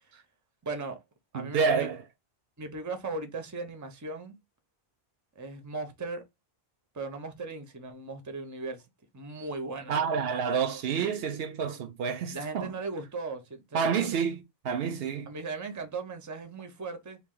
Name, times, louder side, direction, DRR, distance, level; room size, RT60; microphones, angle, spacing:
voice 1, 0.6-1.0 1.3-1.9 2.6-4.4 5.4-6.2 6.9-8.8 9.1-9.9 12.3-14.2 15.3-17.2, right 3 dB, 20° right, 0.6 m, -37 dB
voice 2, 1.3-2.0 9.9-12.7 13.7-15.3, right 6 dB, 75° right, 0.8 m, -29 dB
3.1 x 2.6 x 3.6 m
omnidirectional pair, 1.1 m